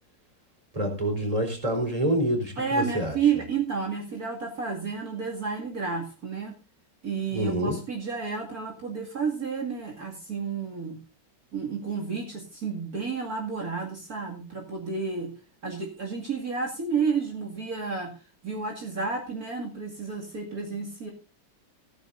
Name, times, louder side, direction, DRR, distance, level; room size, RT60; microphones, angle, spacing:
voice 1, 0.7-3.2 7.3-7.8, right 1 dB, 20° right, 4 dB, 4.3 m, -27 dB
voice 2, 2.6-6.6 7.0-11.0 11.5-15.3 15.6-18.2 18.4-21.1, right 5 dB, 55° right, 0 dB, 2.8 m, -31 dB
15.0 x 14.5 x 2.6 m, 0.34 s
omnidirectional pair, 1.9 m